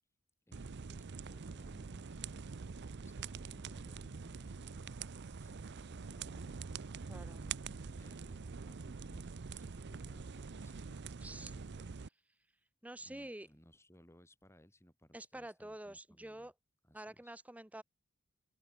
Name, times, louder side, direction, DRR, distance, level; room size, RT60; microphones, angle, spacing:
voice 1, 0.5-2.1 2.6-4.7 5.2-7.0 7.3-12.0 12.9-16.5 16.8-17.4, equal, 10° left, 7.7 m, -63 dB
sound 1, 0.5-12.1, right 5 dB, 50° right, 0.6 m, -45 dB
voice 2, 7.1-7.4 11.2-11.5 12.8-13.5 15.1-16.5 16.9-17.8, right 1 dB, 5° right, 0.9 m, -48 dB
open air
head